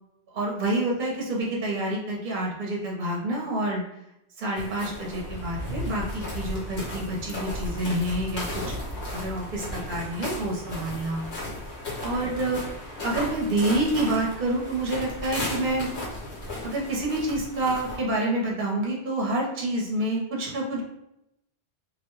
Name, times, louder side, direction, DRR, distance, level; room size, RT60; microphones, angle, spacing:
voice 1, 0.3-3.8 4.4-8.5 9.1-11.2 12.0-12.6 13.0-15.9 16.6-20.9, right 1 dB, 50° right, -2 dB, 0.9 m, -28 dB
sound 1, 4.6-18.0, left 1 dB, 80° left, 1.2 m, -35 dB
2.6 x 2.2 x 3.1 m, 0.83 s
omnidirectional pair, 1.1 m